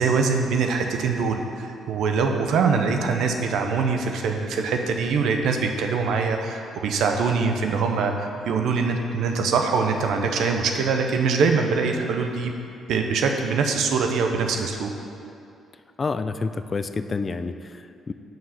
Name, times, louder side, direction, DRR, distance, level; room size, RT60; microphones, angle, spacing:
voice 1, 0.0-12.6 12.9-14.9, right 5 dB, 80° right, 4 dB, 0.6 m, -23 dB
voice 2, 16.0-18.1, left 4 dB, 35° left, 11 dB, 0.3 m, -29 dB
6.1 x 4.9 x 5.6 m, 2.6 s
cardioid pair, 90°, 0 cm